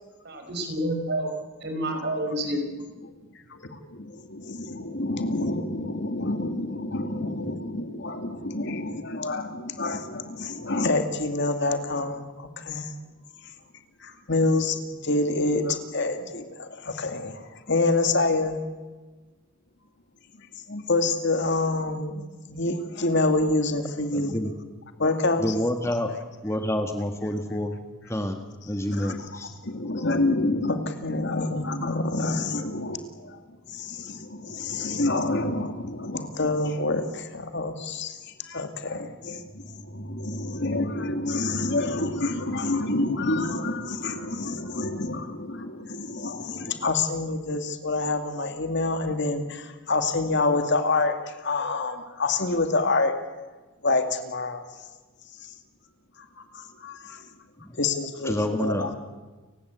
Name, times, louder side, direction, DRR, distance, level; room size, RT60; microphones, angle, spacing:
voice 1, 0.3-1.3 1.6-2.6, right 1 dB, 50° right, 4 dB, 5.5 m, -28 dB
voice 2, 3.5-12.9 14.0-18.6 20.7-22.2 22.5-24.3 25.0-25.5 28.9-33.4 33.7-53.1 53.8-54.6 55.4-55.5 56.5-57.3 57.8-59.0, left 2 dB, 50° left, 7 dB, 2.3 m, -27 dB
voice 3, 24.1-24.5 25.4-26.1 26.4-27.8 28.1-28.4 28.7-29.5 57.6-57.7 58.2-59.0, left 1 dB, 15° left, 5 dB, 1.6 m, -28 dB
30.0 x 17.0 x 8.3 m, 1.3 s
head